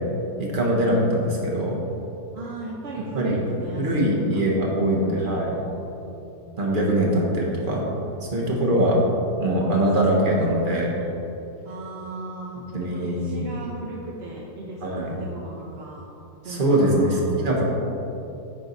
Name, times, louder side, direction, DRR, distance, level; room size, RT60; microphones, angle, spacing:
voice 1, 0.4-1.8 3.1-3.4 3.8-5.6 6.6-7.9 8.3-9.0 9.4-10.9 12.7-13.5 14.8-15.2 16.4-17.6, right 1 dB, 35° right, -2 dB, 1.2 m, -22 dB
voice 2, 2.3-4.4 4.8-6.2 8.4-8.9 9.6-11.1 11.6-16.1 16.4-16.6 17.0-17.3, right 2 dB, 55° right, -3 dB, 0.7 m, -37 dB
9.6 x 4.5 x 4.0 m, 2.9 s
omnidirectional pair, 1.8 m